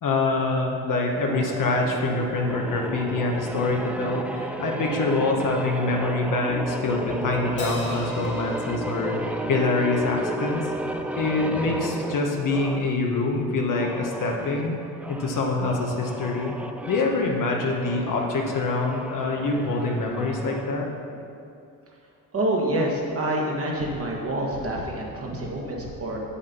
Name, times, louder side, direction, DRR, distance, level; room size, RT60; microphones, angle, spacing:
voice 1, 0.0-10.7 11.2-14.8 15.1-16.5 16.9-20.9, left 3 dB, 55° left, 0 dB, 1.2 m, -25 dB
sound 1, 1.3-13.0 13.6-20.8, right 1 dB, 5° right, 0.3 m, -33 dB
Crash cymbal, 7.6-10.3, left 2 dB, 30° left, 1.6 m, -39 dB
voice 2, 22.3-26.2, right 1 dB, 40° right, -2 dB, 1.7 m, -27 dB
7.4 x 6.4 x 5.4 m, 2.5 s
cardioid pair, 105°, 37 cm